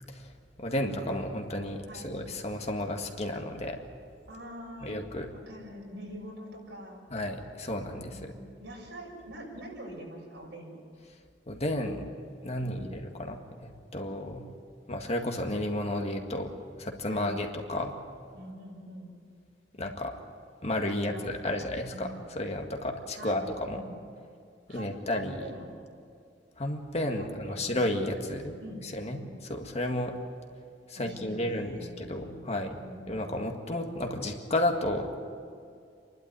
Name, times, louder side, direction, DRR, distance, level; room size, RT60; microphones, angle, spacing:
voice 1, 0.6-3.8 4.8-5.3 7.1-8.3 11.5-12.1 12.4-14.4 14.9-16.5 16.8-17.9 19.8-20.1 20.6-22.1 22.4-23.8 24.7-25.4 26.6-28.5 28.9-29.2 29.5-30.1 30.9-32.8 33.1-35.2, left 1 dB, 40° left, 3 dB, 1.9 m, -32 dB
voice 2, 1.9-2.2 4.3-5.0 5.3-7.0 8.0-10.8 12.6-12.9 17.1-17.3 18.3-19.1 21.0-21.6 21.9-22.2 23.1-24.0 24.7-25.7 27.2-27.7 28.6-28.8 29.1-29.3 31.0-32.1 32.8-33.1, equal, 85° right, -2 dB, 6.7 m, -45 dB
27.5 x 12.0 x 9.6 m, 2.3 s
head